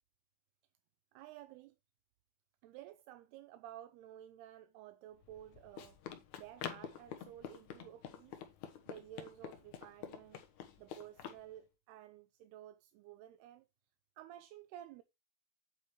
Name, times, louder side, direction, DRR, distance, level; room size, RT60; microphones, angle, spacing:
voice 1, 1.1-1.8 2.6-6.0 6.4-8.4 8.9-10.4 10.8-13.7 14.2-15.0, right 12 dB, 80° right, 2.6 m, -53 dB
Run, 5.2-11.4, left 9 dB, 70° left, 1.8 m, -48 dB
9.0 x 8.2 x 3.1 m
omnidirectional pair, 5.0 m